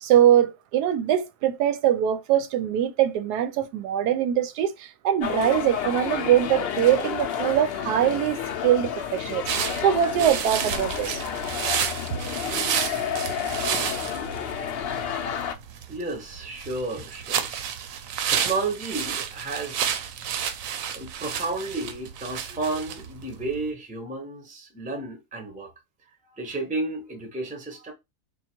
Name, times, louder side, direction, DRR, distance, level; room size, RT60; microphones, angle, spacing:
voice 1, 0.0-9.4 9.8-11.2, right 10 dB, 85° right, 1.2 m, -22 dB
sound 1, 5.2-15.5, left 8 dB, 85° left, 0.5 m, -30 dB
sound 2, 9.5-23.7, right 8 dB, 70° right, 0.9 m, -31 dB
voice 2, 15.9-17.5 17.9-18.0 18.3-19.9 20.9-25.7 26.2-27.9, right 3 dB, 10° right, 0.5 m, -32 dB
3.7 x 2.2 x 4.3 m
omnidirectional pair, 1.7 m